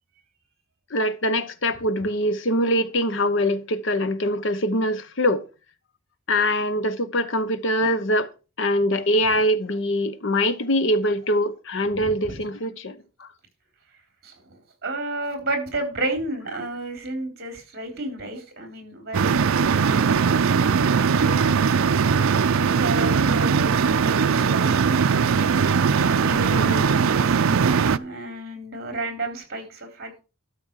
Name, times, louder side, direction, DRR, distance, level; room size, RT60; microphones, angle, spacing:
voice 1, 0.9-5.4 6.3-8.3 8.6-13.3 25.6-25.8 26.5-26.8, equal, 65° left, 1.0 m, -23 dB
voice 2, 11.9-12.5 14.2-20.3 21.0-21.5 22.6-25.2 26.0-26.8 27.1-27.4 27.9-30.2, right 2 dB, 50° right, 3.7 m, -32 dB
sound 1, 19.1-28.0, right 6 dB, 85° right, 0.5 m, -20 dB
12.5 x 6.2 x 4.7 m
head